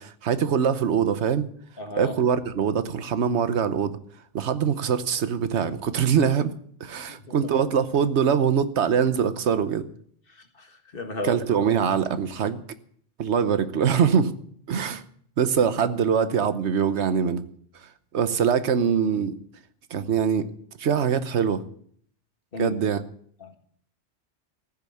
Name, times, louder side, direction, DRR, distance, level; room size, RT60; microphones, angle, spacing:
voice 1, 0.0-1.5 2.0-4.0 4.3-6.5 6.8-9.9 11.2-12.6 13.2-14.3 14.7-15.0 15.4-17.4 18.1-19.4 19.9-20.5 20.8-21.6 22.6-23.0, right 7 dB, 80° right, 12 dB, 1.2 m, -23 dB
voice 2, 1.8-2.1 7.1-7.5 10.6-11.4 22.5-22.8 23.4-23.5, left 2 dB, 55° left, 6 dB, 1.8 m, -34 dB
15.0 x 6.8 x 8.5 m, 0.62 s
omnidirectional pair, 1.1 m